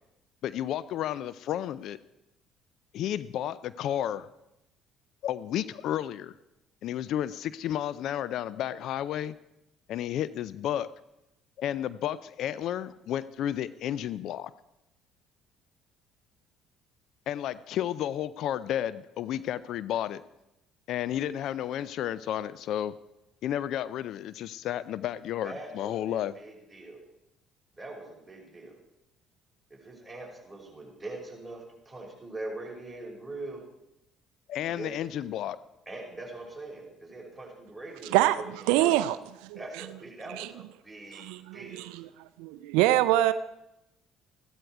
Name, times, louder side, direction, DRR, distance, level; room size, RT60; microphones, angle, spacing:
voice 1, 0.4-2.0 2.9-4.3 5.2-6.3 6.8-9.3 9.9-10.9 11.6-14.5 17.3-20.2 20.9-22.9 23.4-26.3 34.5-35.6, left 11 dB, 65° left, 17 dB, 0.4 m, -32 dB
voice 2, 25.4-27.0 27.7-28.8 29.7-33.6 34.6-34.9 35.9-39.0 39.5-41.3 41.5-41.9, right 2 dB, 10° right, -2 dB, 5.5 m, -42 dB
voice 3, 38.1-38.4 38.7-39.2 39.4-39.6 40.4-40.5 41.1-42.1 42.4-43.3, right 15 dB, 80° right, 13 dB, 0.4 m, -24 dB
14.5 x 12.5 x 4.7 m, 0.89 s
supercardioid pair, 65°, 0 cm